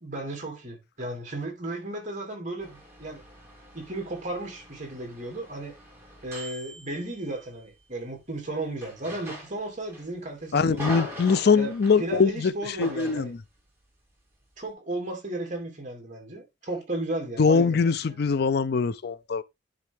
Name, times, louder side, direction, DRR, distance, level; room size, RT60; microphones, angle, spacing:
voice 1, 0.0-3.2 3.7-5.7 6.2-11.0 11.6-11.7 12.0-13.3 14.6-18.4, right 2 dB, 40° right, 2.6 m, -35 dB
sound 1, 2.6-7.6 8.8-10.1 10.4-12.1 12.8-13.3, equal, 15° right, 3.2 m, -41 dB
voice 2, 10.5-13.4 17.4-19.4, left 5 dB, 55° left, 0.5 m, -23 dB
10.5 x 3.7 x 3.5 m
head